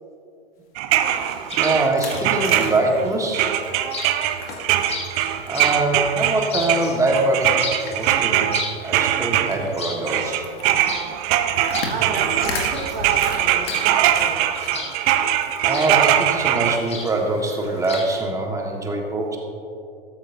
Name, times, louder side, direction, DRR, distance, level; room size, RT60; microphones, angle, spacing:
sound 1, 0.8-3.1 3.3-9.8 10.1-16.8, right 12 dB, 35° right, 0.7 m, -22 dB
sound 2, 0.9-4.8 5.1-5.7 6.2-8.3 8.6-8.7 8.9-9.1 9.5-9.8 10.6-14.7 15.1-15.9 16.2-16.3 16.7-16.8 17.8-18.0, left 4 dB, 70° left, 2.1 m, -34 dB
Chirp tweet, 1.1-18.2, left 3 dB, 20° left, 1.7 m, -37 dB
voice 1, 1.6-3.5 5.1-7.6 7.9-10.4 15.6-19.4, right 2 dB, 10° right, 1 dB, 1.5 m, -23 dB
voice 2, 11.8-14.4, right 4 dB, 65° right, 0 dB, 2.1 m, -32 dB
13.5 x 13.0 x 2.7 m, 2.5 s
hypercardioid pair, 105°, 31 cm